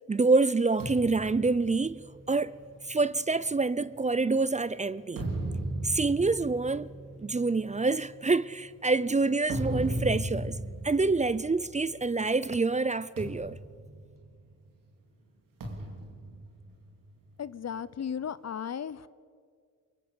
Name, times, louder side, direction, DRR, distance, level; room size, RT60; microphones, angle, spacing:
voice 1, 0.1-2.0 2.3-2.5 2.9-5.2 5.8-6.9 7.2-10.6 10.8-13.6, right 3 dB, 20° right, 0.6 m, -26 dB
sound 1, 0.8-4.4 4.9-12.3 12.6-12.8 13.2-14.8 15.6-17.4, right 1 dB, 85° right, 3.7 m, -37 dB
voice 2, 17.4-19.1, left 8 dB, 55° left, 0.9 m, -35 dB
23.5 x 23.0 x 7.1 m
cardioid pair, 75°, 32 cm